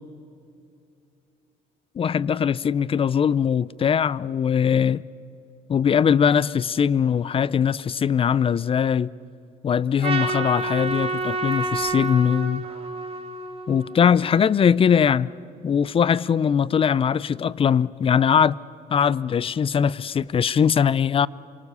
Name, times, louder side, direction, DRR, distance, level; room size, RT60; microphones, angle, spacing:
voice 1, 2.0-5.0 5.7-9.1 9.6-12.6 13.7-15.3 15.6-18.6 18.9-21.3, left 7 dB, 35° left, 0.5 m, -21 dB
Purr / Meow, 10.0-12.2, left 5 dB, 70° left, 3.7 m, -46 dB
Trumpet, 10.0-14.4, right 3 dB, 35° right, 2.7 m, -29 dB
28.0 x 24.5 x 6.9 m
cardioid pair, 110°, 17 cm